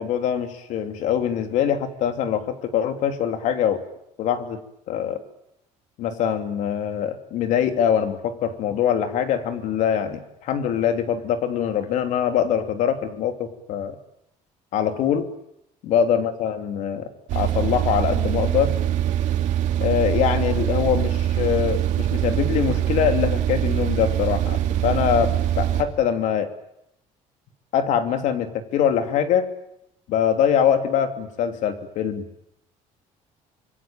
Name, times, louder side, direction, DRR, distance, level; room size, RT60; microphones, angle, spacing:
voice 1, 0.0-3.8 4.2-4.6 4.9-5.2 6.0-14.0 14.7-15.3 15.8-17.1 17.3-18.7 19.8-24.6 24.8-26.5 27.7-29.5 30.1-32.2, left 9 dB, 65° left, 8 dB, 3.2 m, -23 dB
sound 1, 17.3-25.8, right 11 dB, 65° right, 2.9 m, -23 dB
26.5 x 22.5 x 9.2 m, 0.80 s
cardioid pair, 160°, 14 cm